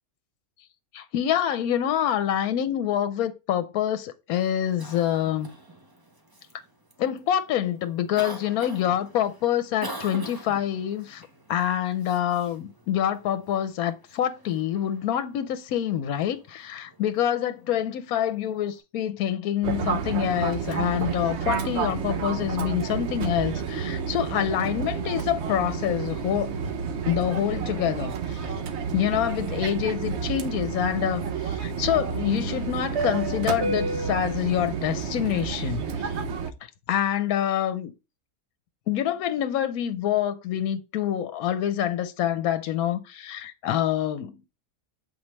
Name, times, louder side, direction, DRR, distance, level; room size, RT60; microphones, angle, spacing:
voice 1, 0.9-5.5 7.0-26.6 27.1-28.6 28.9-36.2 36.9-37.9 38.9-44.4, left 10 dB, 80° left, 1.1 m, -26 dB
Cough, 4.3-18.8, right 1 dB, 20° right, 0.8 m, -46 dB
Fixed-wing aircraft airplane, 19.6-36.5, right 6 dB, 55° right, 0.9 m, -30 dB
7.1 x 4.2 x 3.2 m
omnidirectional pair, 1.5 m